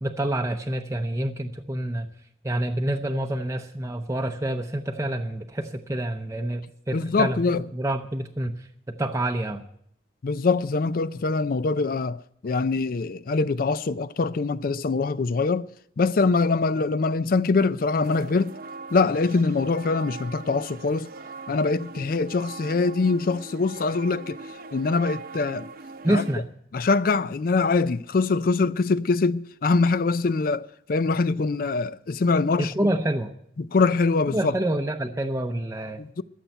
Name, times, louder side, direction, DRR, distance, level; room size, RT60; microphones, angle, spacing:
voice 1, 0.0-2.1 2.4-9.6 26.0-26.5 32.6-33.4 34.3-36.2, right 1 dB, 15° right, 0.6 m, -27 dB
voice 2, 6.9-7.6 10.2-15.7 16.0-18.5 18.9-21.1 21.5-24.4 24.7-25.7 26.1-26.2 26.7-32.7 33.6-34.5 36.0-36.2, left 4 dB, 55° left, 0.4 m, -23 dB
sound 1, 18.0-26.3, right 3 dB, 55° right, 0.8 m, -41 dB
13.0 x 7.0 x 10.0 m
head